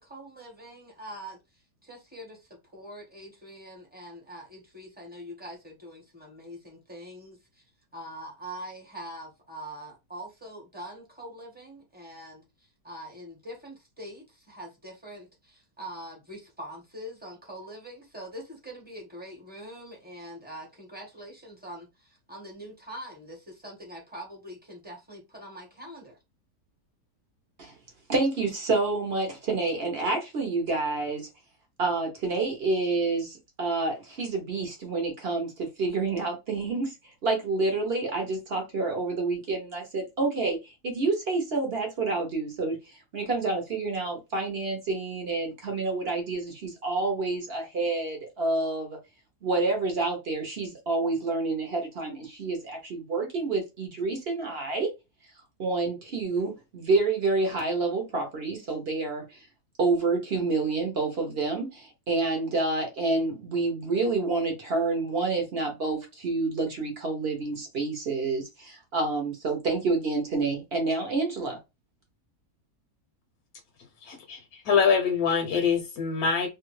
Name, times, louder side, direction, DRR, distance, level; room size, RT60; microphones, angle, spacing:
voice 1, 0.0-7.6 7.9-26.2, equal, 5° right, 0.8 m, -43 dB
voice 2, 28.1-31.3 31.8-36.9 37.2-49.0 49.4-54.9 55.6-59.4 59.8-71.6, right 3 dB, 50° right, 0.8 m, -28 dB
voice 3, 74.0-76.5, left 6 dB, 70° left, 1.0 m, -24 dB
2.7 x 2.4 x 3.0 m
omnidirectional pair, 1.8 m